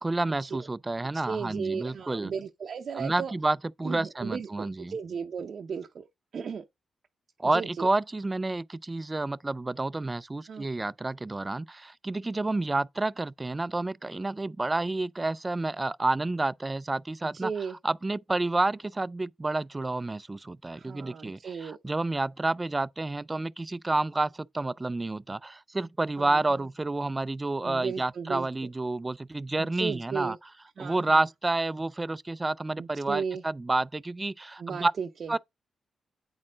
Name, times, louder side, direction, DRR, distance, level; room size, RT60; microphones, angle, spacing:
voice 1, 0.0-2.3 3.0-4.9 7.4-30.4 30.8-34.9 35.3-35.4, right 2 dB, 20° right, 0.4 m, -29 dB
voice 2, 1.3-3.3 3.8-6.1 6.3-6.6 7.5-7.9 10.5-10.7 17.3-17.8 20.7-21.8 26.2-26.6 27.6-28.5 29.8-30.4 30.8-31.2 32.8-33.4 34.6-35.3, right 6 dB, 60° right, 0.6 m, -35 dB
8.5 x 4.3 x 3.8 m
cardioid pair, 75°, 0 cm